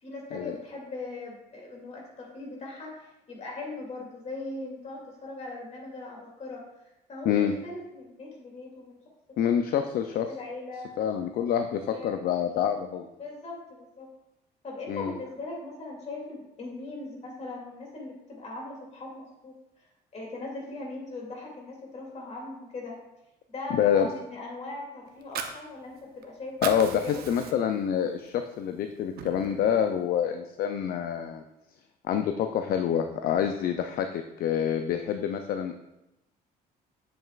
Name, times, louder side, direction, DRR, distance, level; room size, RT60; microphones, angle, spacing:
voice 1, 0.0-6.6 7.1-9.0 10.1-10.9 11.9-12.2 13.2-14.1 14.6-19.5 20.1-23.0 23.5-26.6 27.0-27.8, left 2 dB, 40° left, -2 dB, 2.6 m, -40 dB
voice 2, 9.4-10.3 11.0-13.1 14.9-15.1 23.7-24.1 26.6-31.4 32.1-35.8, left 9 dB, 65° left, 7 dB, 0.5 m, -27 dB
Fire, 25.1-26.2 26.5-27.8 28.3-28.4 28.8-29.8, right 7 dB, 65° right, 0.8 m, -37 dB
7.8 x 7.7 x 2.4 m, 0.91 s
cardioid pair, 110°, 17 cm